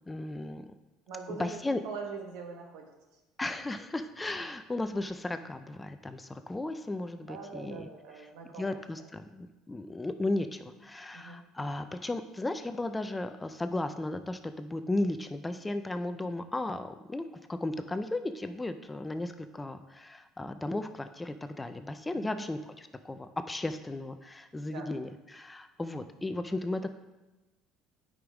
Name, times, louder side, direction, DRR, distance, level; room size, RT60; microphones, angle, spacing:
voice 1, 0.1-0.7 1.3-1.8 3.4-7.9 8.6-26.9, left 2 dB, 10° left, 9 dB, 0.4 m, -35 dB
voice 2, 1.1-2.8 7.1-9.0 11.1-11.4 22.1-22.5 24.7-24.8, right 4 dB, 85° right, 2 dB, 1.4 m, -43 dB
9.3 x 5.2 x 3.6 m, 1.1 s
cardioid pair, 125°, 0 cm